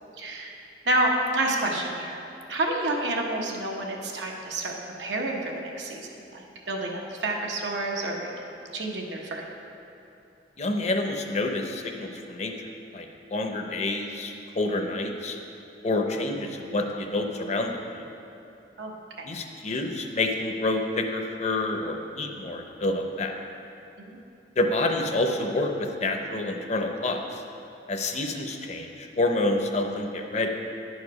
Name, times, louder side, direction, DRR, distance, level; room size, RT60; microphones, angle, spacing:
voice 1, 0.2-0.5 0.8-2.2 2.5-8.3 8.7-9.4 18.8-18.9 19.2-19.3 24.1-24.2, right 1 dB, 85° right, 0 dB, 1.1 m, -29 dB
voice 2, 10.6-15.4 15.8-18.1 19.2-23.3 24.6-27.4 27.9-30.5, left 2 dB, 40° left, 4 dB, 0.6 m, -28 dB
10.5 x 4.9 x 5.3 m, 2.8 s
head